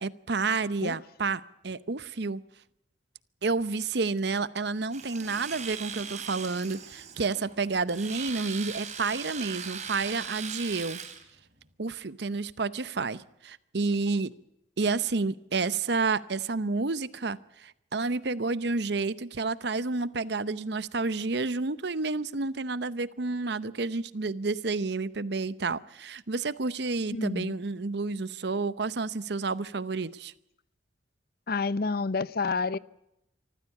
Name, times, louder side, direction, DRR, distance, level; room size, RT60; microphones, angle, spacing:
voice 1, 0.0-2.4 3.4-11.0 11.8-14.3 14.8-30.3, right 3 dB, 60° right, 0.8 m, -30 dB
Domestic sounds home sounds, 4.9-11.2, right 7 dB, 40° right, 2.9 m, -39 dB
voice 2, 27.1-27.5 31.5-32.8, left 4 dB, 55° left, 0.7 m, -29 dB
25.0 x 14.5 x 8.3 m
head